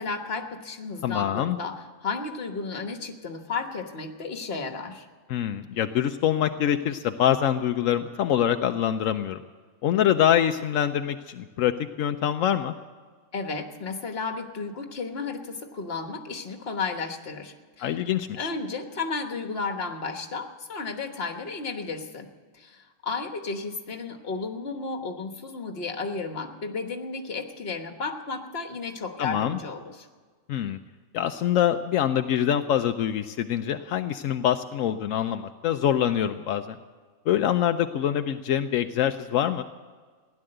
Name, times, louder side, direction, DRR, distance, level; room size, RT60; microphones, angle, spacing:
voice 1, 0.0-5.1 13.3-17.9 18.3-22.3 22.5-30.1, left 4 dB, 50° left, 5 dB, 1.5 m, -33 dB
voice 2, 1.0-1.6 5.3-9.4 9.8-11.7 12.0-12.7 17.8-18.5 29.2-29.6 30.5-30.8 31.1-36.8 37.3-39.6, left 10 dB, 85° left, 8 dB, 1.0 m, -25 dB
16.5 x 11.0 x 7.8 m, 1.5 s
omnidirectional pair, 1.3 m